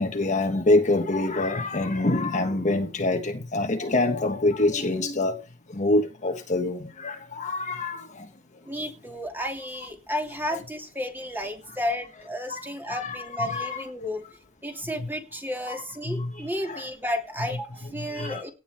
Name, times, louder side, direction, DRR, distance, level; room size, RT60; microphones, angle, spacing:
voice 1, 0.0-5.4 5.7-8.3 10.5-10.6 12.5-13.0 13.4-13.8 15.0-15.1 15.7-16.8 18.0-18.4, left 2 dB, 35° left, 1.5 m, -26 dB
voice 2, 8.7-14.2 14.6-18.5, left 1 dB, 10° right, 2.7 m, -32 dB
17.5 x 9.3 x 4.4 m
head